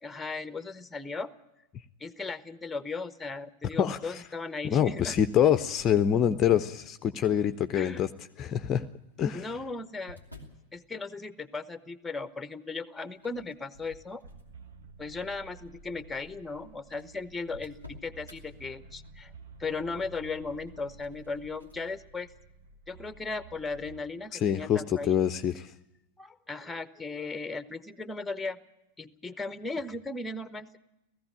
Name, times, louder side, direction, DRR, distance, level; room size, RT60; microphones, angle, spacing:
voice 1, 0.0-1.3 2.0-5.1 7.8-8.1 9.3-10.2 10.7-14.2 15.0-19.3 19.6-22.3 22.9-25.2 26.2-28.6 29.0-30.8, left 3 dB, 10° left, 15 dB, 1.0 m, -37 dB
voice 2, 3.8-4.2 4.6-8.1 8.4-8.9 9.2-9.5 24.3-25.7, left 9 dB, 30° left, 10 dB, 0.6 m, -26 dB
sound 1, 5.1-6.6 7.2-7.7 8.8-10.7 13.1-14.7 15.2-15.4 16.2-16.3 16.5-16.6 16.9-18.4 20.5-21.8, left 1 dB, 85° right, 2.9 m, -53 dB
sound 2, 14.2-24.0, right 4 dB, 60° right, 1.5 m, -52 dB
17.5 x 15.0 x 9.9 m, 0.90 s
figure-of-eight pair, 90°, 0 cm